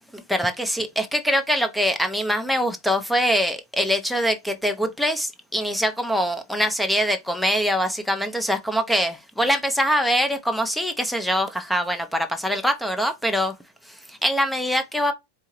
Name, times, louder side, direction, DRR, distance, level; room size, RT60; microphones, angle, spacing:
voice 1, 0.1-13.5 13.8-15.1, equal, ahead, 0.6 m, -23 dB
4.5 x 2.7 x 2.9 m
figure-of-eight pair, 90°, 0 cm